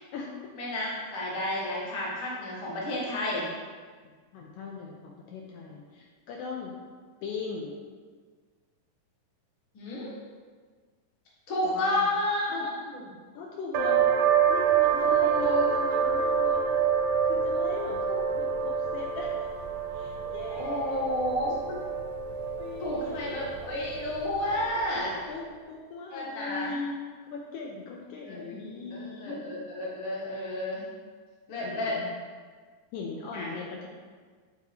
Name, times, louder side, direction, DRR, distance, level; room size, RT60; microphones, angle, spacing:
voice 1, 0.6-3.5 9.7-10.1 11.5-13.0 15.0-15.7 18.1-18.2 20.5-21.8 22.8-25.2 26.1-26.7 28.2-30.8 31.5-32.0 33.3-33.5, left 1 dB, 55° left, -5 dB, 1.4 m, -31 dB
voice 2, 4.0-6.7 7.2-7.8 11.6-12.0 12.5-12.7 13.3-14.1 14.5-16.8 17.2-18.0 18.3-19.5 19.9-21.1 22.5-23.4 24.7-27.0 27.3-29.5 31.6-32.1 32.9-33.9, left 4 dB, 90° left, -1 dB, 1.6 m, -39 dB
sound 1, 13.7-25.0, right 7 dB, 80° right, 1.8 m, -27 dB
9.2 x 4.1 x 2.8 m, 1.5 s
omnidirectional pair, 4.1 m